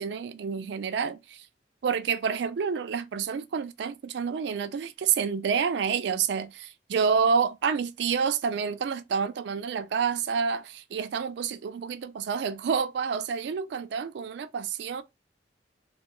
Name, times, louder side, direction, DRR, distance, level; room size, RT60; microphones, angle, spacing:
voice 1, 0.0-1.5 1.8-15.0, right 6 dB, 65° right, 0.3 m, -28 dB
2.2 x 2.2 x 2.9 m
head